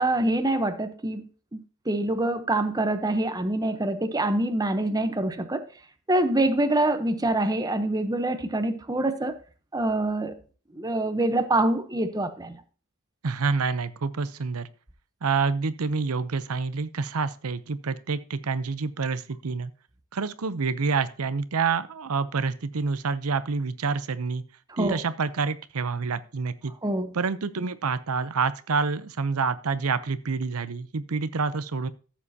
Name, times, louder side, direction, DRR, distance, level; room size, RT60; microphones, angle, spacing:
voice 1, 0.0-5.6 6.1-9.4 9.7-10.3 10.7-12.6 24.8-25.0 26.8-27.1, right 1 dB, 20° right, 0.9 m, -25 dB
voice 2, 13.2-14.7 15.2-19.7 20.1-24.4 24.8-26.7 27.1-31.9, right 4 dB, 90° right, 0.7 m, -27 dB
14.5 x 7.4 x 2.8 m
head